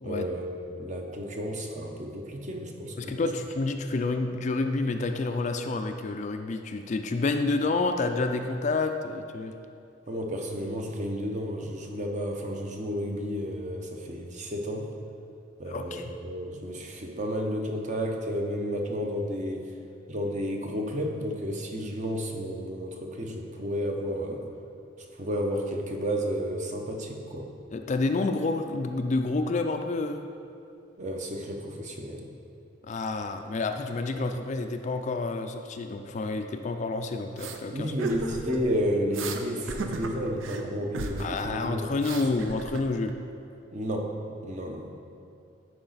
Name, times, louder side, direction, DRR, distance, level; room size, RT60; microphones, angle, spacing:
voice 1, 0.0-3.2 10.1-14.9 15.6-19.7 20.1-24.4 25.2-27.5 31.0-32.3 37.7-41.8 43.7-44.1 44.4-44.9, equal, 40° right, 2 dB, 0.7 m, -32 dB
voice 2, 3.0-9.5 15.7-16.1 27.7-30.2 32.8-37.9 41.2-43.1, left 3 dB, 35° left, 6 dB, 0.3 m, -29 dB
sound 1, 37.4-37.6 38.0-38.7 39.1-39.4 39.7-40.6 40.9-41.4 41.7-43.1, right 3 dB, 85° right, 0.6 m, -35 dB
10.5 x 4.9 x 4.0 m, 2.6 s
head